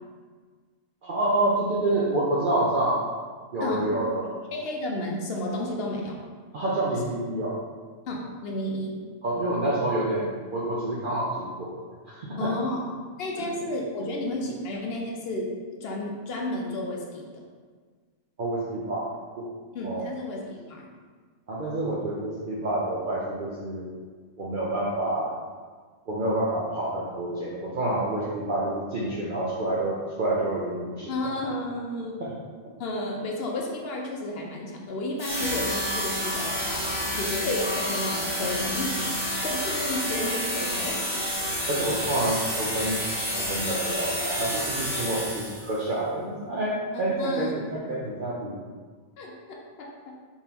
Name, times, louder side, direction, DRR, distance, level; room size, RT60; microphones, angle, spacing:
voice 1, 1.0-3.0 3.5-4.3 6.5-7.6 9.2-12.5 13.4-13.5 18.4-19.5 19.8-20.0 21.5-23.9 24.4-25.3 26.1-31.1 32.2-32.3 41.7-43.0 43.3-48.6, right 1 dB, 55° right, -6 dB, 0.6 m, -28 dB
voice 2, 3.6-3.9 4.5-6.2 8.1-9.0 12.4-12.9 13.2-15.5 15.8-17.4 19.7-20.9 31.1-32.1 32.8-38.9 39.4-41.2 46.9-48.0 49.2-49.9, left 1 dB, 55° left, 0 dB, 0.7 m, -32 dB
sound 1, 35.2-45.8, equal, 20° right, 1.4 m, -29 dB
4.5 x 3.5 x 2.9 m, 1.5 s
omnidirectional pair, 1.5 m